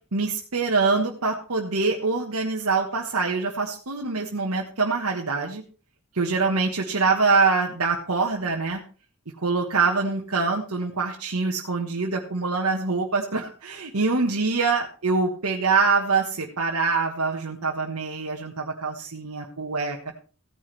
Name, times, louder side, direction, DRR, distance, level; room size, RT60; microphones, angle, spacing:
voice 1, 0.1-5.6 6.1-8.8 9.4-20.0, right 4 dB, 85° right, -1 dB, 1.4 m, -24 dB
16.0 x 10.0 x 3.3 m, 0.38 s
head